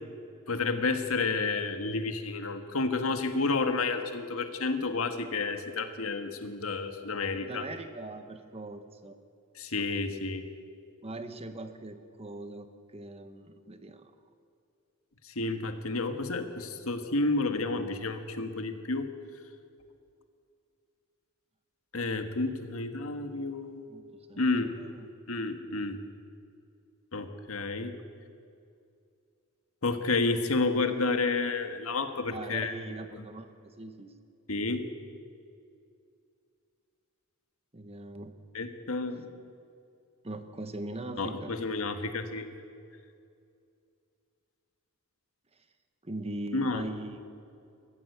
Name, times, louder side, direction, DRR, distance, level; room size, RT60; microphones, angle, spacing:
voice 1, 0.5-7.7 9.6-10.5 15.2-19.1 21.9-23.9 24.4-24.7 25.3-26.0 27.1-27.9 29.8-32.7 33.1-33.2 34.5-34.8 38.5-39.3 41.2-42.5 46.5-46.8, left 3 dB, 75° left, 7 dB, 1.6 m, -30 dB
voice 2, 7.3-9.2 11.0-14.0 23.9-25.1 32.3-33.5 33.8-34.1 37.7-38.3 40.2-41.5 46.0-47.3, right 2 dB, 30° right, 8 dB, 1.2 m, -41 dB
22.0 x 15.0 x 8.2 m, 2.4 s
head